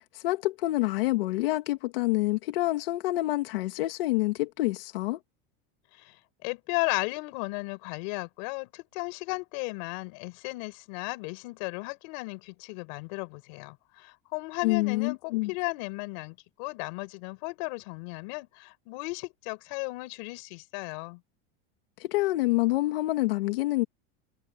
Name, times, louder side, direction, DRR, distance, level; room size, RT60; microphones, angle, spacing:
voice 1, 0.0-5.2 14.6-15.5 22.0-23.8, left 19 dB, 70° left, 2.6 m, -27 dB
voice 2, 5.9-21.2, left 29 dB, 50° left, 6.5 m, -35 dB
supercardioid pair, 175°, 29 cm